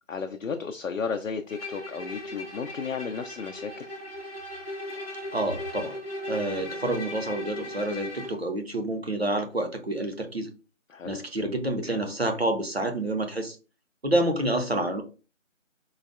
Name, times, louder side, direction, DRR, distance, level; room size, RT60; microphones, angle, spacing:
voice 1, 0.1-3.9 10.9-11.1, left 5 dB, 75° left, 0.5 m, -33 dB
Bowed string instrument, 1.5-8.4, left 1 dB, 50° left, 0.8 m, -37 dB
voice 2, 5.3-5.9 6.3-10.5 11.0-13.6 14.0-15.0, right 1 dB, 50° right, 0.6 m, -28 dB
3.8 x 2.2 x 2.4 m
figure-of-eight pair, 175°, 39 cm